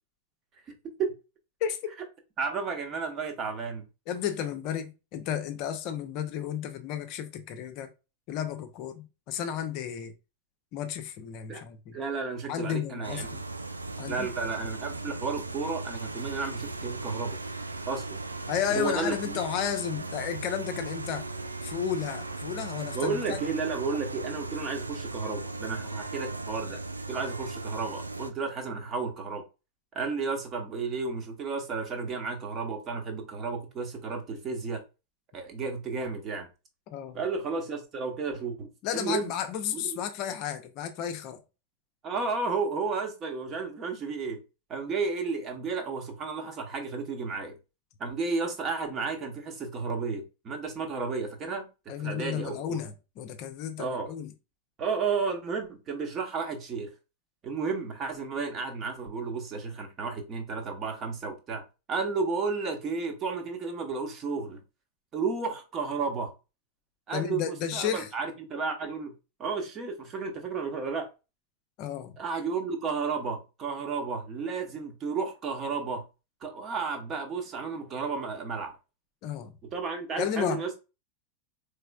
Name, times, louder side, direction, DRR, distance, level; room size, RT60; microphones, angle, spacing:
voice 1, 1.6-1.9 4.1-7.9 8.3-10.1 10.7-12.0 12.5-13.4 14.0-14.3 18.5-21.2 21.6-23.4 36.9-37.2 38.8-41.4 51.9-54.3 67.1-68.1 71.8-72.2 79.2-79.5 80.2-80.8, left 9 dB, 40° left, 0.6 m, -33 dB
voice 2, 2.4-3.8 11.5-11.6 11.9-13.3 14.1-17.4 17.9-18.2 18.7-19.3 22.9-26.8 27.1-29.4 29.9-34.8 35.3-36.5 37.1-39.3 42.0-44.4 44.7-47.5 48.0-51.7 52.0-52.8 53.8-54.1 54.8-56.9 57.4-61.6 61.9-64.6 65.1-66.3 67.1-69.1 69.4-71.1 72.2-76.0 76.4-78.8 79.7-80.8, right 4 dB, 30° right, 1.0 m, -32 dB
sound 1, 13.0-28.3, right 3 dB, 80° right, 0.4 m, -37 dB
4.2 x 3.3 x 2.3 m
figure-of-eight pair, 90°, 0 cm